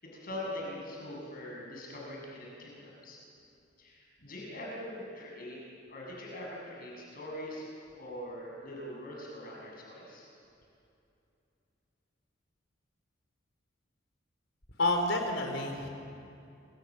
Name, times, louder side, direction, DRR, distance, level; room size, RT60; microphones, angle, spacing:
voice 1, 0.0-3.2 3.8-5.6 5.9-10.3, left 1 dB, 50° left, -3 dB, 6.7 m, -42 dB
voice 2, 14.8-15.9, left 2 dB, 75° left, 3 dB, 4.4 m, -29 dB
29.0 x 25.5 x 7.4 m, 2.7 s
head